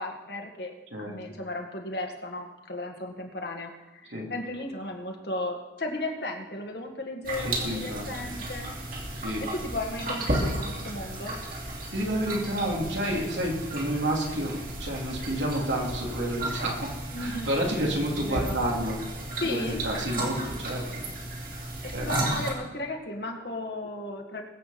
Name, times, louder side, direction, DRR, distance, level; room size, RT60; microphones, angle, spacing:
voice 1, 0.0-8.7 9.4-11.4 17.1-17.6 18.2-18.6 19.4-19.8 21.8-24.4, left 2 dB, 60° left, 3 dB, 1.8 m, -35 dB
sound 1, 7.2-22.5, right 1 dB, 50° right, 3.0 m, -34 dB
voice 2, 7.4-8.0 9.2-9.4 11.9-16.9 17.2-19.0 19.4-21.0 21.9-22.3, right 1 dB, 80° right, -1 dB, 3.1 m, -30 dB
22.5 x 8.1 x 4.3 m, 1.1 s
head